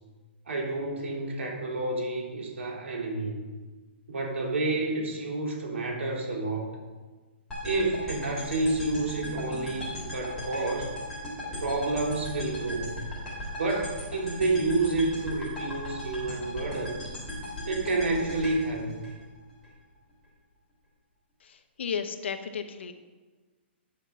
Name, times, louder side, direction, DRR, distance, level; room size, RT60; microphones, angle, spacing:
voice 1, 0.5-3.4 4.1-6.7 7.6-10.9 11.6-13.0 13.6-17.0 17.6-19.0, right 2 dB, 90° right, -1 dB, 3.4 m, -29 dB
sound 1, 7.5-19.7, left 1 dB, 5° left, 3.4 m, -37 dB
voice 2, 21.4-22.9, left 6 dB, 70° left, 7 dB, 1.1 m, -34 dB
10.5 x 6.2 x 5.7 m, 1.3 s
hypercardioid pair, 165°, 6 cm